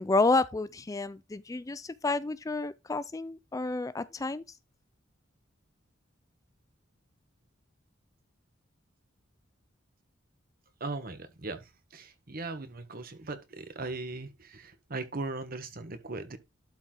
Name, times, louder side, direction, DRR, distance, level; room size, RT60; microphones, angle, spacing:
voice 1, 0.0-4.4, left 3 dB, 20° left, 0.4 m, -30 dB
voice 2, 10.8-16.4, right 3 dB, 50° right, 1.4 m, -39 dB
12.0 x 4.3 x 3.8 m
head